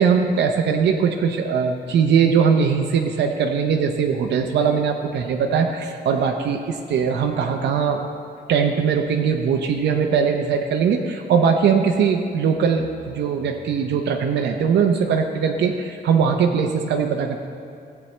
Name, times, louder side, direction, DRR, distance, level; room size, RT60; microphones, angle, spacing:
voice 1, 0.0-8.0 8.5-17.4, right 6 dB, 90° right, 3 dB, 0.7 m, -20 dB
15.5 x 8.1 x 3.3 m, 2.6 s
wide cardioid pair, 165°, 18 cm